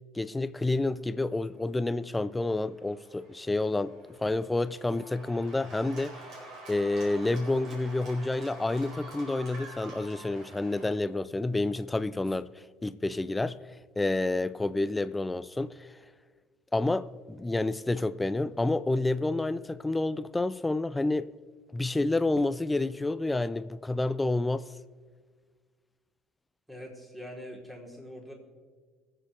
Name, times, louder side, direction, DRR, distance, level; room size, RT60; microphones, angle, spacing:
voice 1, 0.1-3.9 4.2-6.2 6.7-12.5 12.8-13.6 14.0-15.9 16.7-21.3 21.7-24.7, left 2 dB, 15° left, 0.5 m, -29 dB
Cheering / Applause, 1.3-11.0, right 2 dB, 55° right, 4.0 m, -48 dB
voice 2, 26.7-28.3, equal, 10° right, 3.6 m, -43 dB
22.5 x 7.8 x 3.4 m
hypercardioid pair, 65°, 0 cm